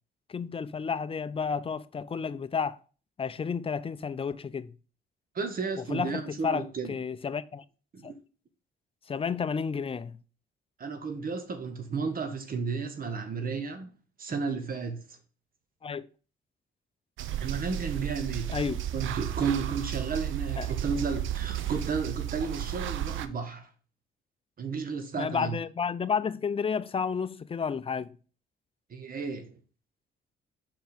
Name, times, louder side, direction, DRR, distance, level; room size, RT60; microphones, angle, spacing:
voice 1, 0.3-2.8 3.2-4.7 5.9-7.6 8.0-8.1 9.1-10.2 15.8-16.1 18.5-18.8 20.6-20.7 25.2-28.2, left 6 dB, 30° left, 0.5 m, -31 dB
voice 2, 5.3-6.9 7.9-8.1 10.8-13.9 14.2-15.2 17.4-18.6 18.9-23.7 24.6-25.6 28.9-29.6, right 5 dB, 45° right, 1.1 m, -33 dB
sound 1, 17.2-23.3, right 12 dB, 80° right, 0.6 m, -33 dB
5.8 x 4.6 x 5.1 m
cardioid pair, 90°, 20 cm